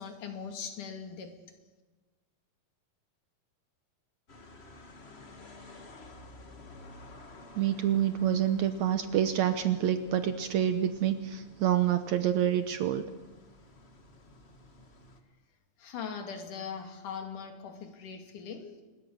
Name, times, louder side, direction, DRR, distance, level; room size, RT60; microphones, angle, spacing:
voice 1, 0.0-1.4 15.8-18.8, left 6 dB, 70° left, 6 dB, 3.8 m, -40 dB
sound 1, 4.3-15.2, left 2 dB, 30° left, 1.3 m, -52 dB
voice 2, 7.6-13.1, right 10 dB, 70° right, 9 dB, 2.1 m, -27 dB
25.5 x 21.0 x 6.6 m, 1.2 s
omnidirectional pair, 3.8 m